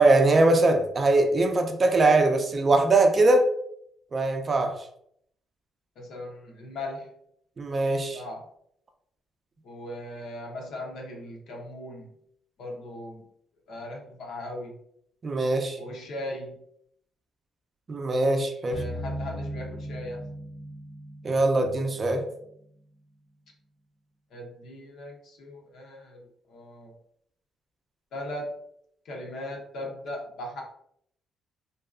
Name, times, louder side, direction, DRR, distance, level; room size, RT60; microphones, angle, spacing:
voice 1, 0.0-3.5 4.1-4.8 7.6-8.2 15.2-15.8 17.9-18.8 21.2-22.2, right 2 dB, 40° right, 5 dB, 0.4 m, -21 dB
voice 2, 6.0-7.1 8.1-8.4 9.6-12.1 12.6-13.3 13.7-14.8 15.8-16.6 18.7-20.2 24.3-27.0 28.1-28.5 29.0-30.6, left 1 dB, 70° left, 0 dB, 0.7 m, -38 dB
sound 1, 18.7-22.5, equal, 35° left, 0.4 m, -38 dB
2.6 x 2.3 x 2.4 m, 0.70 s
cardioid pair, 90°, 0 cm